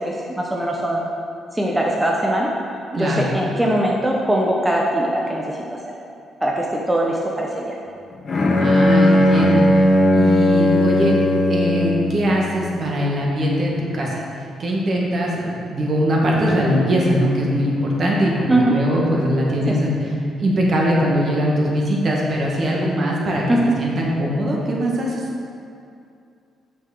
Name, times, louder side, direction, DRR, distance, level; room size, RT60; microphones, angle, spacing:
voice 1, 0.1-1.1 1.5-2.5 2.9-5.8 6.4-7.8 18.5-18.7 19.7-19.8 23.5-23.7, right 1 dB, 10° right, -2 dB, 0.8 m, -21 dB
voice 2, 2.9-3.3 8.6-9.7 10.1-11.2 11.5-14.2 14.6-20.1 20.4-25.2, equal, 50° right, -3 dB, 1.8 m, -21 dB
Bowed string instrument, 8.3-12.3, left 1 dB, 45° left, 1.0 m, -16 dB
6.2 x 5.8 x 6.1 m, 2.5 s
cardioid pair, 90°, 0 cm